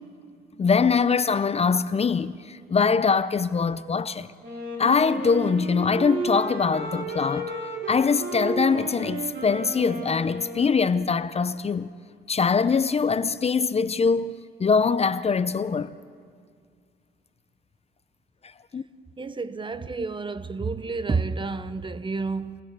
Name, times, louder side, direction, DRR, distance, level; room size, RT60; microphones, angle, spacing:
voice 1, 0.6-4.3 4.8-7.5 7.9-11.9 12.3-16.0 18.7-18.8, left 5 dB, 30° left, 0.6 m, -23 dB
Wind instrument woodwind instrument, 4.4-11.1, right 2 dB, 60° right, 4.7 m, -33 dB
voice 2, 19.2-22.6, right 4 dB, 25° right, 0.8 m, -30 dB
26.0 x 19.5 x 6.7 m
cardioid pair, 90°, 20 cm